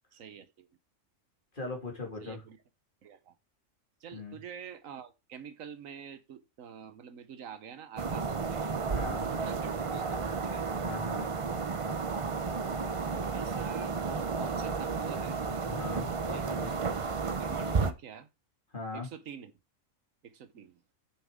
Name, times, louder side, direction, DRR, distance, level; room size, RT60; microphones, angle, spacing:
voice 1, 0.1-0.7 2.2-2.6 3.0-3.3 4.0-8.6 9.0-10.6 13.1-15.4 16.3-18.3 18.9-19.5 20.2-20.8, right 8 dB, 85° right, 1.3 m, -47 dB
voice 2, 1.5-2.4 4.1-4.4 8.8-9.3 10.8-11.3 15.6-16.7 18.7-19.1, left 3 dB, 40° left, 2.7 m, -39 dB
sound 1, 8.0-17.9, right 4 dB, 35° right, 0.5 m, -32 dB
9.0 x 6.9 x 3.7 m
omnidirectional pair, 1.3 m